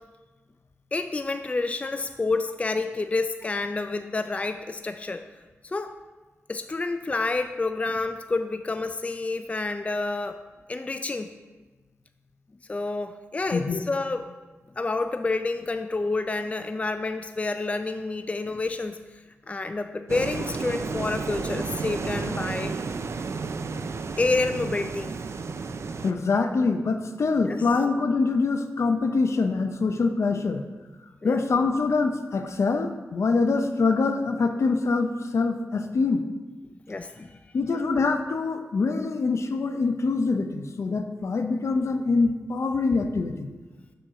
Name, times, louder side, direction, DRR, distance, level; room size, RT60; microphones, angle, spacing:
voice 1, 0.9-5.3 5.6-5.9 6.5-10.4 10.7-11.3 12.7-14.3 14.8-19.2 19.5-22.7 24.2-25.1 27.5-27.6 31.2-31.4 36.9-37.4, left 3 dB, 25° left, 8 dB, 0.3 m, -29 dB
sound 1, 20.1-26.1, right 4 dB, 65° right, 0.4 m, -32 dB
voice 2, 26.0-30.6 31.2-36.2 37.5-43.5, left 4 dB, 70° left, 7 dB, 0.6 m, -24 dB
6.4 x 4.7 x 6.7 m, 1.3 s
wide cardioid pair, 90°, 5 cm